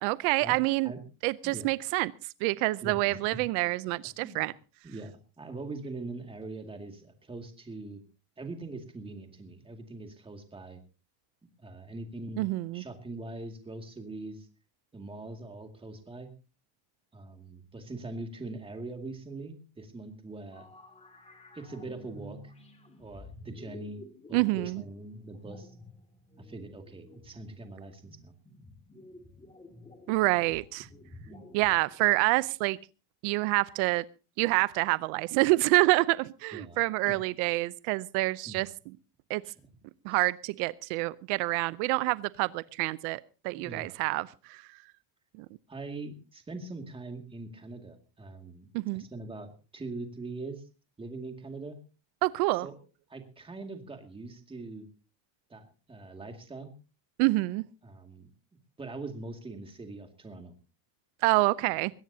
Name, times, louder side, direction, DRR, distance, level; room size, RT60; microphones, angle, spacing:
voice 1, 0.0-0.9 1.2-2.1 2.4-4.5 12.4-12.8 24.3-24.8 30.1-30.9 31.5-32.8 33.2-34.0 34.4-38.7 39.3-39.4 40.0-44.6 45.4-45.5 48.7-49.0 52.2-52.7 57.2-57.6 61.2-61.9, right 22 dB, 80° right, 17 dB, 0.7 m, -27 dB
voice 2, 2.8-3.2 4.2-4.5 4.8-8.0 8.4-10.8 11.6-12.5 12.7-14.5 14.9-16.3 17.1-20.7 21.5-22.5 23.0-24.0 24.3-25.7 26.4-28.3 31.3-31.5 36.5-36.8 37.1-37.2 38.5-38.7 39.4-39.5 40.1-40.2 43.5-44.0 45.7-50.6 51.0-51.8 52.5-52.7 53.1-54.9 55.5-56.7 57.8-58.3 58.8-60.5, right 2 dB, 10° right, 5 dB, 2.2 m, -42 dB
sound 1, 20.5-32.4, left 2 dB, 15° left, 2.2 m, -51 dB
21.5 x 17.0 x 2.8 m, 0.33 s
cardioid pair, 170°, 48 cm